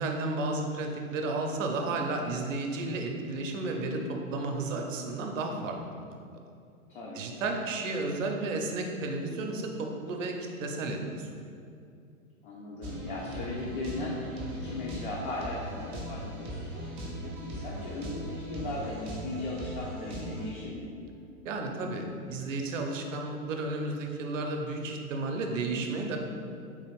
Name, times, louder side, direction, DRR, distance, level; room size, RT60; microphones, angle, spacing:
voice 1, 0.0-6.1 7.1-11.4 21.4-26.2, right 2 dB, 60° right, 3 dB, 0.6 m, -33 dB
voice 2, 6.9-7.2 12.4-16.6 17.4-20.9, left 2 dB, 40° left, -4 dB, 0.5 m, -37 dB
sound 1, 12.8-20.5, equal, 20° right, 0.4 m, -39 dB
3.8 x 2.4 x 3.1 m, 2.4 s
hypercardioid pair, 115°, 43 cm